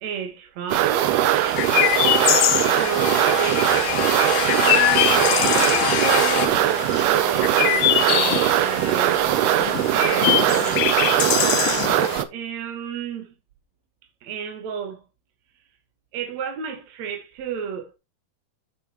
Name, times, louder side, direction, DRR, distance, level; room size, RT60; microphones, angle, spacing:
voice 1, 0.0-1.2 2.7-3.7 4.5-9.3 9.9-11.4 12.3-13.4 14.2-15.0 16.1-17.9, right 8 dB, 55° right, 2.4 m, -32 dB
sound 1, 0.7-6.5, left 8 dB, 55° left, 1.8 m, -26 dB
sound 2, 0.7-12.2, right 13 dB, 90° right, 2.7 m, -21 dB
Chirp tweet, 1.6-12.2, left 14 dB, 80° left, 2.7 m, -24 dB
10.0 x 7.8 x 3.0 m
omnidirectional pair, 4.4 m